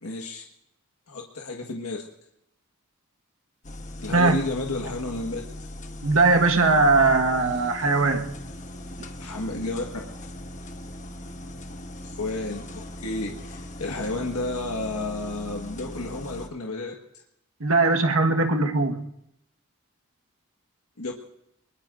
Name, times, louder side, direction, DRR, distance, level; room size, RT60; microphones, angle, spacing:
voice 1, 0.0-0.4 1.1-2.1 4.0-5.4 9.2-9.8 12.0-17.0 21.0-21.1, left 2 dB, 90° left, 1.6 m, -31 dB
sound 1, 3.6-16.5, left 1 dB, 35° left, 1.1 m, -39 dB
voice 2, 6.0-8.3 17.6-19.1, right 3 dB, 70° right, 1.5 m, -20 dB
24.0 x 21.0 x 2.6 m
head